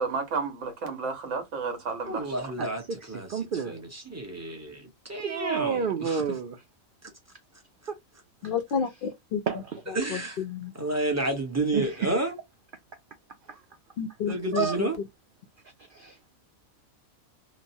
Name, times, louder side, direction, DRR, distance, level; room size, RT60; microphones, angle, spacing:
voice 1, 0.0-2.3, right 4 dB, 60° right, 1.3 m, -31 dB
voice 2, 2.1-2.8 3.1-3.3 3.6-6.2 9.9-10.4 10.7-12.3 14.2-15.0, right 2 dB, 15° right, 0.7 m, -30 dB
voice 3, 2.6-3.8 5.2-6.6 7.9-8.0 8.4-8.5 9.5-9.8 11.7-12.3 13.5-13.6 14.5-14.8 15.9-16.2, right 6 dB, 80° right, 0.4 m, -31 dB
voice 4, 8.4-9.4 10.5-10.7 14.0-14.7, left 6 dB, 70° left, 0.5 m, -30 dB
3.0 x 2.1 x 2.6 m
omnidirectional pair, 1.5 m